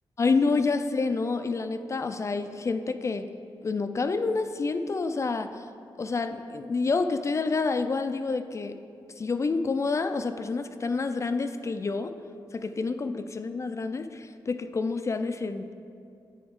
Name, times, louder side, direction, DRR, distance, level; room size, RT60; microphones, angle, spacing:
voice 1, 0.2-3.3 3.6-5.7 6.0-8.8 9.2-12.1 12.5-15.7, left 4 dB, 35° left, 9 dB, 0.4 m, -28 dB
9.3 x 7.9 x 3.6 m, 2.5 s
cardioid pair, 95°, 9 cm